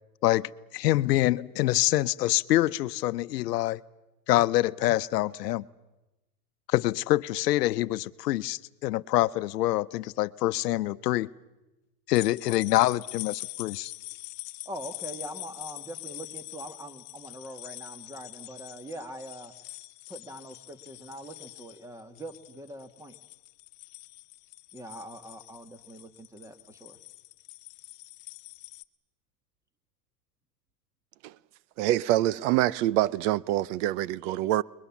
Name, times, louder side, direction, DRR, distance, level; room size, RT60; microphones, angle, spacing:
voice 1, 0.2-3.8 4.3-5.7 6.7-11.3 12.1-13.9, left 16 dB, 80° left, 0.9 m, -26 dB
sound 1, 12.1-28.8, left 20 dB, 55° left, 1.2 m, -44 dB
voice 2, 14.6-19.5 20.1-23.2 24.7-27.0, right 1 dB, 5° right, 1.7 m, -43 dB
voice 3, 31.8-34.6, right 14 dB, 50° right, 0.8 m, -25 dB
29.5 x 22.0 x 7.3 m
supercardioid pair, 135°, 47 cm